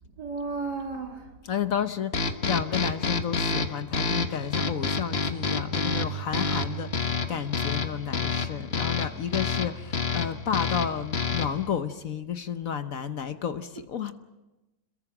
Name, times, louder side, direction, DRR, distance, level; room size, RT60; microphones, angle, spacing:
voice 1, 0.2-1.3, right 4 dB, 75° right, 3.4 m, -33 dB
voice 2, 1.4-14.1, left 8 dB, 55° left, 1.2 m, -31 dB
sound 1, 2.1-11.7, left 4 dB, 40° left, 1.4 m, -29 dB
27.0 x 21.5 x 6.0 m
omnidirectional pair, 1.8 m